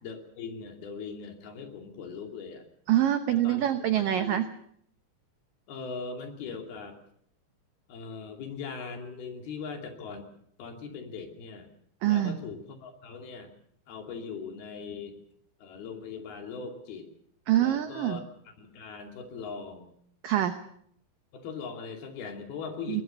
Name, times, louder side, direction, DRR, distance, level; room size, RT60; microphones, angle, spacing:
voice 1, 0.0-2.7 3.3-3.6 4.0-4.5 5.7-7.0 7.9-10.3 10.6-11.7 12.1-13.5 13.9-15.2 15.6-17.1 17.6-18.2 18.6-19.9 21.3-23.0, left 5 dB, 60° left, 4 dB, 4.4 m, -40 dB
voice 2, 2.9-4.5 12.0-12.4 17.5-18.2 20.2-20.6 22.9-23.0, right 12 dB, 85° right, 9 dB, 1.9 m, -25 dB
21.5 x 20.0 x 7.0 m, 0.66 s
omnidirectional pair, 5.4 m